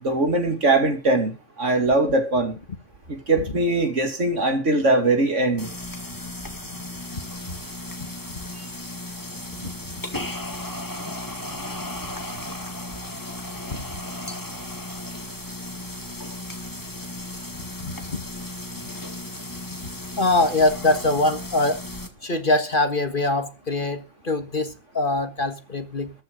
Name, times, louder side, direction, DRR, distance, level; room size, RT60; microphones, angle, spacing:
voice 1, 0.0-2.6 3.1-5.7 8.6-8.7, right 2 dB, 60° right, 2.8 m, -21 dB
sound 1, 5.6-22.1, left 1 dB, 15° left, 2.0 m, -35 dB
voice 2, 20.2-21.8 22.2-26.1, left 2 dB, 40° left, 1.7 m, -23 dB
14.0 x 12.0 x 5.3 m
omnidirectional pair, 1.4 m